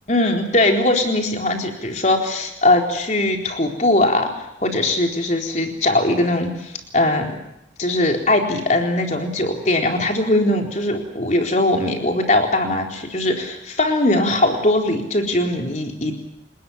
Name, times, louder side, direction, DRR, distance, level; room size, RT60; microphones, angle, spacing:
voice 1, 0.1-7.4 7.8-16.2, left 1 dB, 40° left, 2 dB, 4.1 m, -20 dB
30.0 x 20.0 x 7.2 m, 0.82 s
head